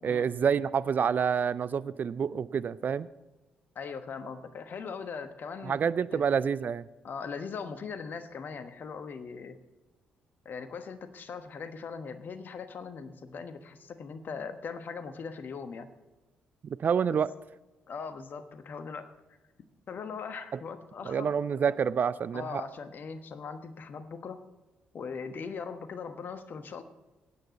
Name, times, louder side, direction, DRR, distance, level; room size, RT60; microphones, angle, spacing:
voice 1, 0.0-3.1 5.6-6.9 16.6-17.3 20.5-20.6 21.0-22.6, right 7 dB, 45° right, 16 dB, 0.5 m, -28 dB
voice 2, 3.7-5.8 6.1-6.2 7.0-9.6 10.4-15.9 17.1-17.2 17.9-19.1 19.9-21.3 22.3-24.4 24.9-26.8, left 5 dB, 50° left, 9 dB, 1.2 m, -40 dB
20.5 x 9.2 x 4.1 m, 1.1 s
figure-of-eight pair, 45°, 4 cm